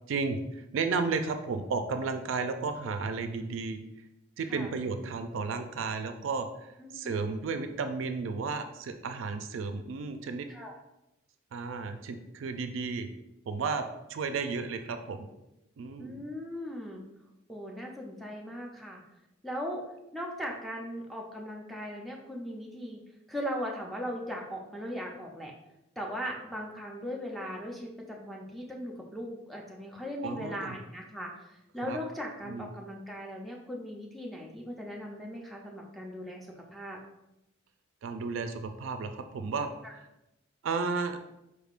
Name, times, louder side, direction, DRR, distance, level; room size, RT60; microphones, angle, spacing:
voice 1, 0.1-3.8 4.4-6.5 6.9-10.5 11.5-13.1 13.5-15.3 15.8-16.2 30.2-30.8 31.8-32.0 32.4-32.7 38.0-39.7 40.6-41.2, right 4 dB, 70° right, 8 dB, 0.3 m, -33 dB
voice 2, 6.8-7.3 10.5-10.7 16.0-17.0 17.5-19.0 19.4-19.8 20.1-23.0 23.3-25.5 26.0-37.0 39.8-39.9, equal, ahead, -1 dB, 0.5 m, -38 dB
4.4 x 3.5 x 2.4 m, 0.90 s
head